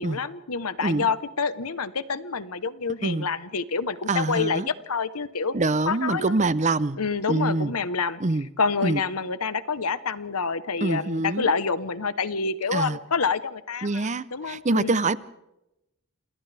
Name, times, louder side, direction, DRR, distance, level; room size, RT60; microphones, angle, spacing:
voice 1, 0.0-5.5 5.9-6.4 7.0-8.2 8.6-15.0, left 5 dB, 90° left, 14 dB, 1.1 m, -27 dB
voice 2, 4.1-4.7 5.5-7.0 7.3-7.7 8.2-8.5 8.8-9.0 10.8-11.5 12.7-13.0 13.8-15.2, right 2 dB, 35° right, 16 dB, 0.7 m, -25 dB
28.5 x 28.0 x 3.4 m, 0.91 s
head